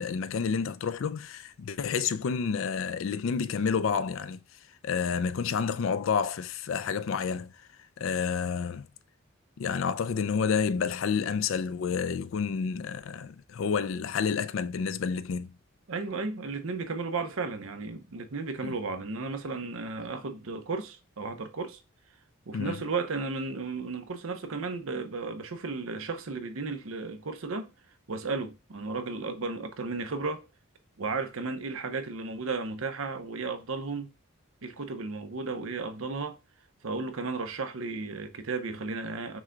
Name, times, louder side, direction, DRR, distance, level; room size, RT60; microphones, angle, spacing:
voice 1, 0.0-4.4 4.8-7.5 8.0-8.8 9.6-15.5 22.5-22.8, left 6 dB, 65° left, 0.4 m, -29 dB
voice 2, 15.9-21.8 22.5-27.7 28.1-30.5 31.0-34.1 34.6-36.4 36.8-39.4, right 4 dB, 70° right, 0.7 m, -34 dB
6.0 x 2.2 x 3.8 m
head